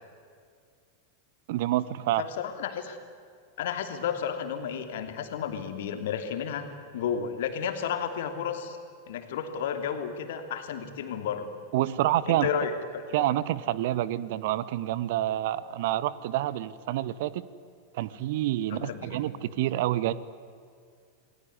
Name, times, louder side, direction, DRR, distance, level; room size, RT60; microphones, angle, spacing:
voice 1, 1.5-2.2 11.7-12.5 13.1-17.4 17.9-20.1, right 14 dB, 50° right, 18 dB, 1.0 m, -28 dB
voice 2, 2.2-3.0 3.6-6.7 6.9-8.8 9.1-11.5 12.3-13.2 18.7-19.3, left 7 dB, 55° left, 7 dB, 3.0 m, -32 dB
28.5 x 20.5 x 9.7 m, 2.2 s
figure-of-eight pair, 90°, 0 cm